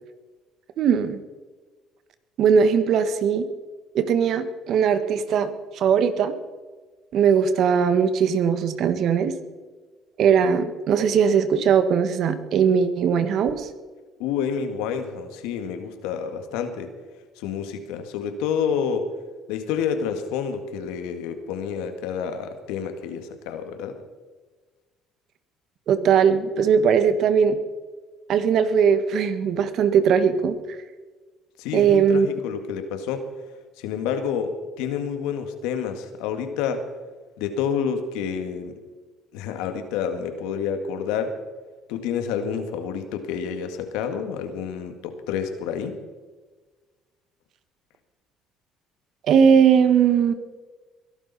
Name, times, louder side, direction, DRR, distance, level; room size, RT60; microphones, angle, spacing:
voice 1, 0.8-1.2 2.4-3.5 3.9-6.3 7.1-9.3 10.2-13.7 25.9-27.6 28.3-30.6 31.7-32.3 49.3-50.3, right 7 dB, 65° right, 11 dB, 1.5 m, -19 dB
voice 2, 14.2-16.9 17.4-19.1 19.5-24.0 31.6-33.2 33.8-36.9 37.4-38.8 39.3-41.3 41.9-46.0, left 7 dB, 85° left, 7 dB, 1.8 m, -29 dB
22.0 x 12.0 x 4.2 m, 1.3 s
supercardioid pair, 70°, 0 cm